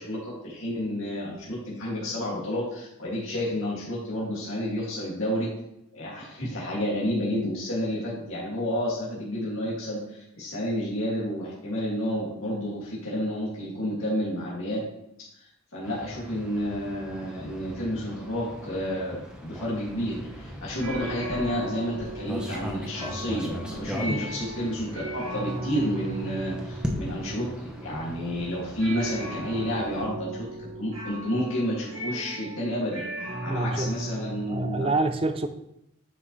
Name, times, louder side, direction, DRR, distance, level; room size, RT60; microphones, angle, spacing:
voice 1, 0.0-5.5 5.9-14.8 15.7-33.0 33.4-34.9, equal, 85° left, -6 dB, 2.3 m, -30 dB
sound 1, 15.8-30.1, equal, 5° right, 0.9 m, -39 dB
sound 2, 20.0-35.0, right 1 dB, 85° right, 2.2 m, -37 dB
voice 2, 33.4-33.9 34.5-35.5, right 2 dB, 25° right, 9 dB, 0.4 m, -27 dB
9.6 x 5.6 x 3.2 m, 0.79 s
head